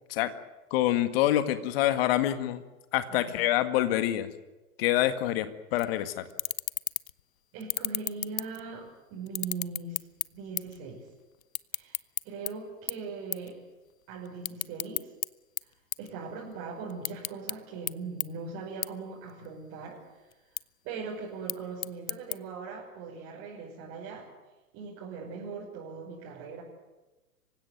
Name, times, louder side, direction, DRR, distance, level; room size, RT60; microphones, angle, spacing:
voice 1, 0.7-2.6 2.9-4.3 4.8-6.2, left 13 dB, 40° left, 10 dB, 2.0 m, -26 dB
voice 2, 3.1-3.4 7.5-10.0 10.3-11.0 11.7-12.0 12.2-13.6 14.1-15.1 16.0-20.0 20.8-24.3 24.7-26.6, right 4 dB, 35° right, -4 dB, 6.0 m, -40 dB
sound 1, 5.8-5.9 6.3-7.2 7.6-8.9 9.3-10.8 11.1-12.5 12.9-13.0 13.3-13.5 13.9-15.3 15.6-16.5 16.9-17.5 17.9-18.0 18.2-18.3 18.8-18.9 19.3-19.8 20.3-20.6 21.3-22.4, left 12 dB, 65° left, 0.7 m, -33 dB
26.0 x 16.5 x 9.4 m, 1.1 s
figure-of-eight pair, 115°, 44 cm